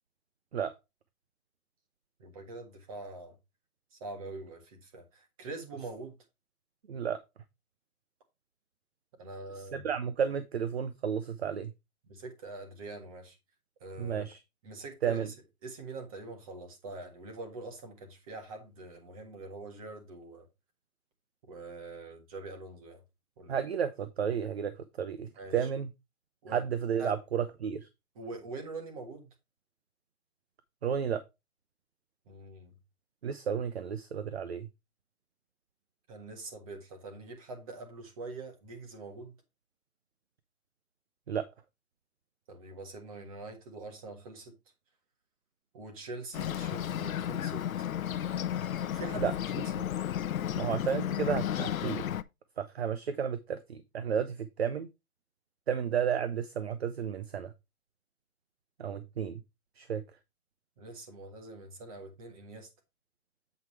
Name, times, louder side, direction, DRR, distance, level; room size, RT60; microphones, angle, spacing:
voice 1, 2.2-3.3 3.9-6.2 9.2-9.9 12.1-13.4 13.8-14.3 14.6-15.3 15.6-20.5 21.5-23.0 23.4-23.5 25.4-25.5 26.4-26.6 27.0-27.1 28.1-29.3 32.3-32.7 36.1-39.3 42.5-44.5 45.7-47.9 48.9-49.3 49.7-49.9 58.9-59.0 60.8-62.7, right 2 dB, 25° right, 1.6 m, -44 dB
voice 2, 6.9-7.2 9.6-11.7 14.0-14.4 15.0-15.3 23.5-25.9 26.5-27.9 30.8-31.2 33.2-34.7 41.3-41.5 49.2-49.3 50.5-52.1 52.6-54.9 55.7-57.5 58.8-59.4 59.8-60.0, right 7 dB, 45° right, 0.7 m, -32 dB
Bird, 46.3-52.2, left 10 dB, 65° left, 0.6 m, -33 dB
8.0 x 4.7 x 4.5 m
hypercardioid pair, 170°, 44 cm